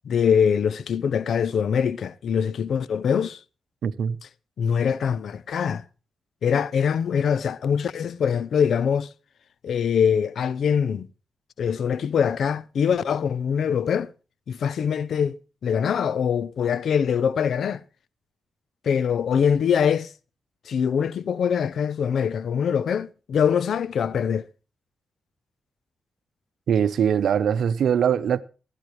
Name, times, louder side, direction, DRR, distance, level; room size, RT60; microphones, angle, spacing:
voice 1, 0.0-3.4 4.6-5.8 6.4-9.1 9.6-11.1 11.6-14.1 14.5-17.8 18.8-20.1 20.7-24.5, left 7 dB, 80° left, 0.6 m, -23 dB
voice 2, 3.8-4.2 26.7-28.4, right 8 dB, 85° right, 0.7 m, -22 dB
17.0 x 14.5 x 3.1 m
cardioid pair, 70°, 0 cm